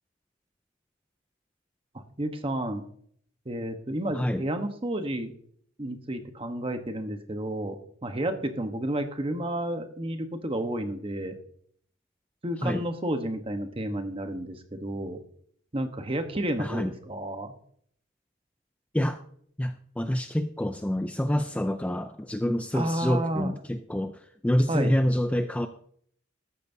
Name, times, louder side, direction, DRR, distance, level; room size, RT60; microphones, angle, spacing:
voice 1, 1.9-2.9 3.4-5.3 5.8-11.3 12.4-15.2 15.7-17.5 22.7-23.6 24.7-24.9, right 1 dB, 30° right, 7 dB, 1.0 m, -31 dB
voice 2, 16.6-16.9 18.9-19.2 19.6-25.7, equal, 5° left, 8 dB, 0.4 m, -27 dB
13.5 x 10.5 x 2.7 m, 0.62 s
head